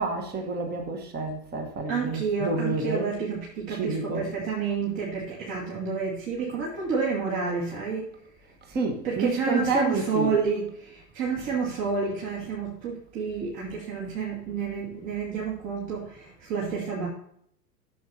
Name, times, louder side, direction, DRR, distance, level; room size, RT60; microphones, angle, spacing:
voice 1, 0.0-3.1 3.7-4.3 8.7-10.4, right 3 dB, 20° right, 1.5 m, -29 dB
voice 2, 1.9-8.1 9.0-17.1, right 5 dB, 40° right, 2.5 m, -29 dB
13.5 x 7.2 x 2.9 m
figure-of-eight pair, 95°, 49 cm